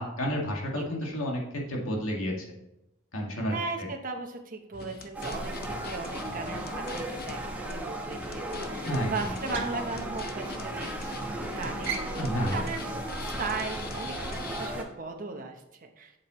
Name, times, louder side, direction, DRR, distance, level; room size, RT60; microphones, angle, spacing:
voice 1, 0.0-2.3 3.1-3.5 8.9-9.1 12.2-12.6, equal, 85° left, -1 dB, 2.0 m, -30 dB
voice 2, 0.7-1.1 3.5-12.9 13.2-16.1, right 3 dB, 40° right, 3 dB, 0.9 m, -37 dB
sound 1, 4.7-7.4 7.7-7.8 8.1-14.7, left 3 dB, 50° left, 0.8 m, -43 dB
sound 2, 5.1-14.8, right 1 dB, 10° right, 1.1 m, -35 dB
sound 3, 9.5-11.0 11.2-11.5 11.8-14.4, right 6 dB, 65° right, 1.1 m, -41 dB
7.8 x 7.7 x 3.1 m, 0.87 s
head